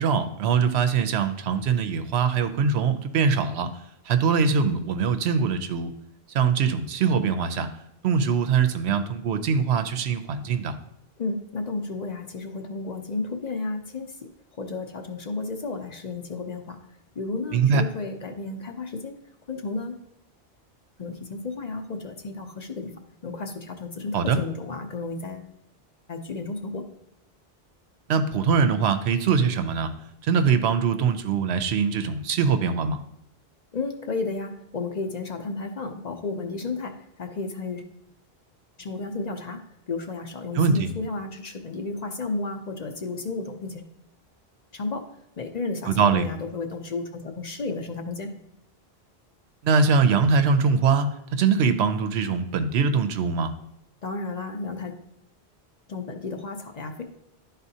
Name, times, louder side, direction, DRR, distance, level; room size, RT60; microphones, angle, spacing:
voice 1, 0.0-3.7 4.1-5.9 6.3-7.7 8.0-10.8 17.5-17.9 24.1-24.4 28.1-29.9 30.2-33.0 40.5-40.9 45.9-46.3 49.6-53.5, right 5 dB, 85° right, 9 dB, 0.9 m, -22 dB
voice 2, 11.2-14.1 14.6-16.8 17.2-19.1 19.5-19.9 21.0-22.9 23.2-25.5 26.1-26.8 33.7-36.9 37.2-37.8 38.8-39.6 39.9-43.8 44.7-45.0 45.4-48.3 54.0-54.9 55.9-57.0, left 3 dB, 45° left, 5 dB, 0.7 m, -32 dB
11.0 x 4.0 x 2.7 m, 0.79 s
omnidirectional pair, 1.1 m